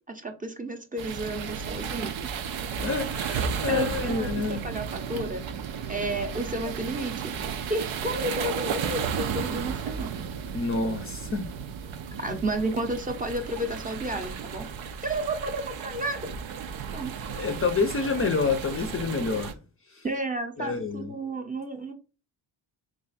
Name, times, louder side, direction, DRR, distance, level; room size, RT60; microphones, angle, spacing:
voice 1, 0.1-2.1 3.7-5.4 5.9-10.2 12.2-14.7 15.0-16.3 16.9-17.1 20.0-21.9, right 1 dB, 20° right, 0.6 m, -32 dB
sound 1, 1.0-19.5, right 7 dB, 80° right, 0.6 m, -34 dB
voice 2, 2.8-4.6 10.5-11.5 12.3-12.4 17.3-19.5 19.9-20.0 20.6-21.1, left 4 dB, 30° left, 0.5 m, -28 dB
3.3 x 2.5 x 4.0 m
cardioid pair, 80°, 47 cm